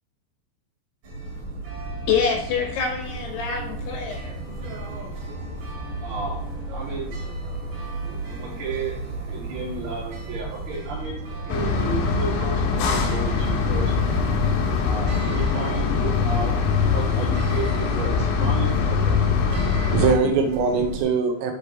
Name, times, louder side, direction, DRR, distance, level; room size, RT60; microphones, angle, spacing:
sound 1, 1.0-21.0, right 2 dB, 50° right, 4.4 m, -34 dB
voice 1, 2.1-4.4, left 6 dB, 70° left, 2 dB, 2.8 m, -26 dB
voice 2, 6.0-6.4 6.7-7.2 8.3-9.0 9.3-11.2 11.5-14.0 14.8-16.6 16.9-19.4, right 3 dB, 70° right, -7 dB, 6.3 m, -33 dB
sound 2, 11.5-20.1, left 6 dB, 85° left, 3.8 m, -22 dB
voice 3, 19.5-21.5, right 5 dB, 90° right, 3 dB, 3.5 m, -22 dB
13.0 x 4.9 x 3.1 m, 0.73 s
omnidirectional pair, 5.8 m